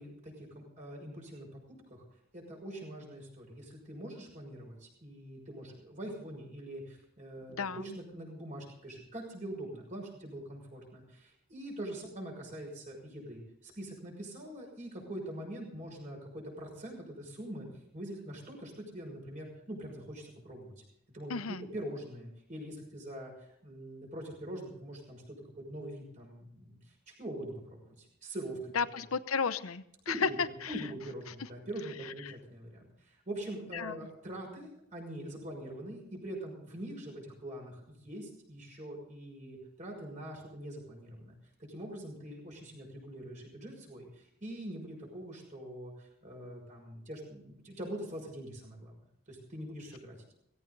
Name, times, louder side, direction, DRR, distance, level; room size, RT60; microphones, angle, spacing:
voice 1, 0.0-1.6 1.9-2.0 2.3-17.7 17.9-20.7 21.1-23.3 23.6-26.8 27.1-28.6 30.1-30.4 30.7-41.3 41.7-48.9 49.3-50.2, right 1 dB, 35° right, 0 dB, 6.0 m, -43 dB
voice 2, 7.5-8.0 21.3-21.7 28.7-30.8 31.3-31.5 32.0-32.4 33.7-34.0, left 5 dB, 85° left, 14 dB, 0.8 m, -34 dB
17.5 x 16.5 x 4.0 m, 0.73 s
head